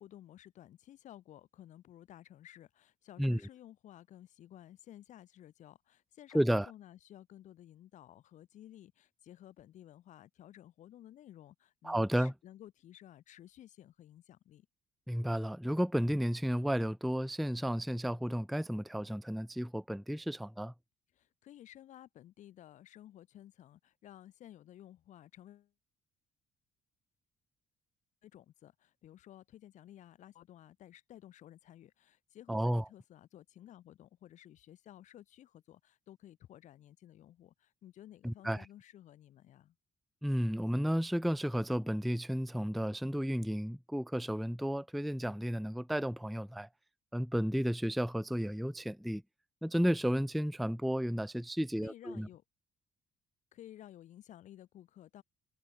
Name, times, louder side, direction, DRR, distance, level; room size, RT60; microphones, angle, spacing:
voice 1, 0.0-14.7 21.1-25.7 28.2-39.7 51.5-52.4 53.5-55.2, left 12 dB, 60° left, 6.0 m, -55 dB
voice 2, 6.3-6.7 11.8-12.3 15.1-20.7 32.5-32.8 38.2-38.7 40.2-46.7 47.1-49.2 49.6-52.3, equal, ahead, 0.3 m, -32 dB
cardioid pair, 175°, 14 cm